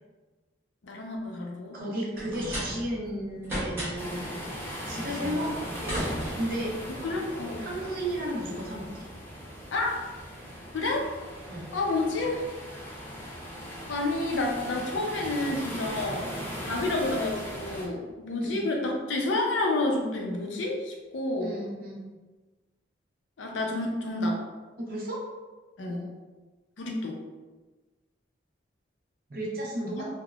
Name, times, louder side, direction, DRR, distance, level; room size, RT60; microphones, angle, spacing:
voice 1, 0.8-1.8 7.0-7.7 9.7-10.0 10.7-11.1 11.7-12.5 13.9-16.3 16.6-21.5 23.4-24.4 25.8-26.0 26.8-27.2 30.0-30.1, left 2 dB, 90° left, 1 dB, 0.5 m, -29 dB
voice 2, 1.7-4.3 4.9-6.0 6.4-6.8 7.6-8.9 11.5-11.7 18.4-18.7 21.4-22.0 24.8-25.2 25.9-26.1 29.3-30.1, right 1 dB, 50° right, -4 dB, 0.7 m, -33 dB
sound 1, 2.2-3.1 3.4-4.2 5.4-6.8, equal, 15° right, 0.8 m, -34 dB
sound 2, 4.0-17.9, equal, 10° left, 0.4 m, -39 dB
3.4 x 2.1 x 2.3 m, 1.3 s
head